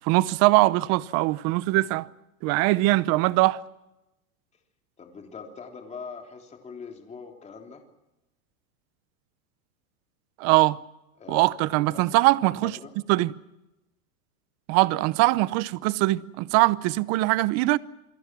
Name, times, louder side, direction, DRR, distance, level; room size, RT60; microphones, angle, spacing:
voice 1, 0.0-2.1 2.4-3.6 10.4-10.8 11.3-12.7 13.1-13.3 14.7-17.8, right 20 dB, 35° right, 0.8 m, -22 dB
voice 2, 5.0-7.8 11.2-12.2 12.6-12.9, left 5 dB, 15° left, 3.4 m, -42 dB
28.5 x 22.0 x 6.1 m
supercardioid pair, 145°, 44 cm